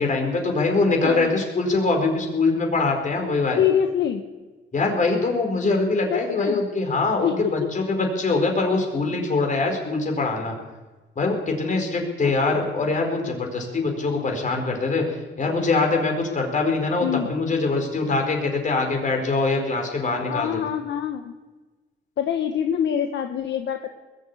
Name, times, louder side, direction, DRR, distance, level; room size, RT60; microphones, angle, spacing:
voice 1, 0.0-3.6 4.7-10.6 11.2-20.5, left 3 dB, 40° left, 2 dB, 4.7 m, -23 dB
voice 2, 1.0-1.4 3.6-4.3 6.1-6.6 7.2-7.7 12.2-12.3 13.9-14.3 17.0-17.3 20.3-21.3 22.2-23.9, left 9 dB, 65° left, 5 dB, 1.1 m, -25 dB
21.0 x 7.7 x 8.5 m, 1.2 s
cardioid pair, 90°, 20 cm